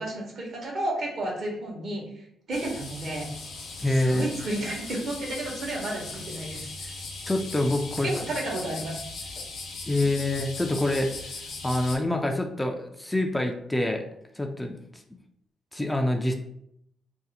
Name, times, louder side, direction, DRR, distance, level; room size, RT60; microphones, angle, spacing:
voice 1, 0.0-2.0 2.5-3.3 3.8-6.9 8.0-9.0 10.0-10.1, right 1 dB, 60° right, -1 dB, 1.0 m, -32 dB
sound 1, 2.5-12.0, left 3 dB, 75° left, 0.7 m, -39 dB
voice 2, 3.8-4.3 7.2-8.1 9.9-11.3 11.6-14.0 14.4-14.8 15.7-16.3, left 1 dB, 10° left, 3 dB, 0.3 m, -26 dB
2.6 x 2.1 x 4.0 m, 0.75 s
cardioid pair, 90°, 0 cm